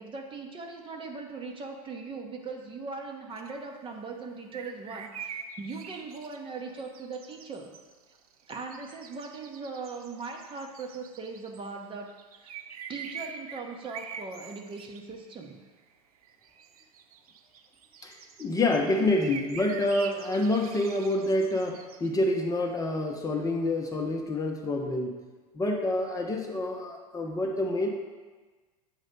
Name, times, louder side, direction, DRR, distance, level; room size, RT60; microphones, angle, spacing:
voice 1, 0.0-7.7 8.5-12.6 12.9-15.6, right 4 dB, 25° right, 2 dB, 0.9 m, -40 dB
sound 1, 3.4-3.5 4.5-11.7 12.1-15.5 15.9-16.0 16.2-22.7, right 7 dB, 75° right, 0.6 m, -45 dB
voice 2, 18.0-25.1 25.5-27.9, left 2 dB, 20° left, 1 dB, 0.8 m, -27 dB
8.0 x 3.1 x 5.3 m, 1.3 s
hypercardioid pair, 90°, 19 cm